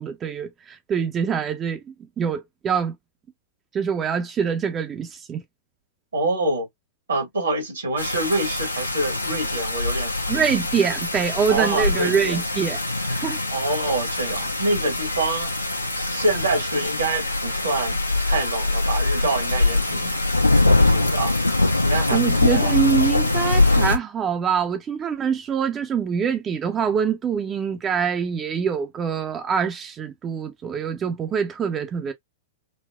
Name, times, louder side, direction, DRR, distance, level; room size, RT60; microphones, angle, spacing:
voice 1, 0.0-1.8 2.2-3.0 3.7-5.4 10.3-12.8 13.1-13.4 22.1-32.1, right 7 dB, 20° right, 0.5 m, -24 dB
voice 2, 6.1-6.7 7.1-10.1 11.5-12.4 13.5-15.5 15.9-21.3 21.8-22.8, right 2 dB, 70° right, 1.2 m, -26 dB
sound 1, 8.0-24.0, left 2 dB, 85° left, 0.8 m, -23 dB
4.1 x 2.0 x 2.4 m
figure-of-eight pair, 100°, 0 cm